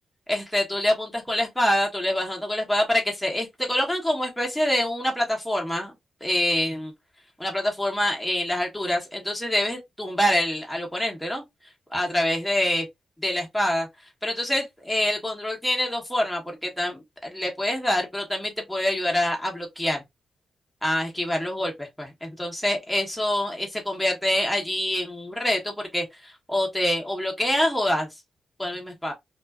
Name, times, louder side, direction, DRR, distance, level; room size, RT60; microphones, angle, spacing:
voice 1, 0.3-5.9 6.2-6.9 7.4-11.4 11.9-12.8 13.2-13.9 14.2-20.0 20.8-28.1 28.6-29.1, left 1 dB, 5° left, 0.9 m, -26 dB
2.4 x 2.3 x 2.3 m
cardioid pair, 65°, 0 cm